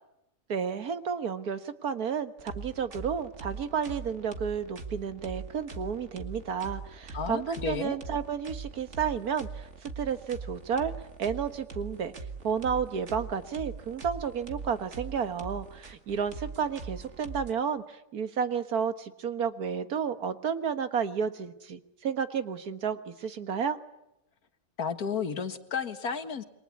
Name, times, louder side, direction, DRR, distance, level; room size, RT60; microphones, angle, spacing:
voice 1, 0.5-10.9 11.2-12.1 12.4-23.8, right 7 dB, 90° right, 10 dB, 1.9 m, -31 dB
sound 1, 2.4-17.5, right 4 dB, 50° right, 2.3 m, -42 dB
voice 2, 7.1-8.0 24.8-26.4, left 6 dB, 85° left, 9 dB, 2.1 m, -32 dB
28.5 x 23.0 x 8.4 m, 0.86 s
omnidirectional pair, 1.5 m